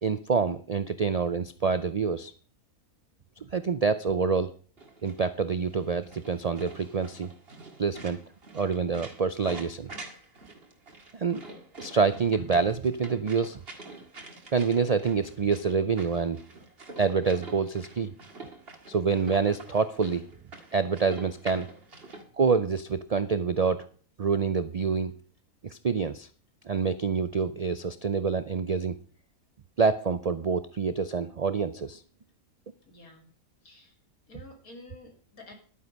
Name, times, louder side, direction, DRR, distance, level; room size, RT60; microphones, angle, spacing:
voice 1, 0.0-2.3 3.5-4.5 5.0-7.3 7.8-8.2 8.5-9.9 11.1-11.4 11.8-13.6 14.5-16.4 17.0-18.1 18.9-20.2 20.7-21.7 22.4-23.9 24.2-25.1 25.6-26.3 26.7-28.9 29.8-32.0, right 5 dB, 90° right, 13 dB, 0.3 m, -26 dB
sound 1, 4.8-22.2, right 3 dB, 45° right, 2.1 m, -46 dB
voice 2, 32.9-33.3 33.6-34.0 34.3-35.5, left 2 dB, 90° left, 4 dB, 2.9 m, -50 dB
11.5 x 9.5 x 5.3 m, 0.43 s
omnidirectional pair, 1.5 m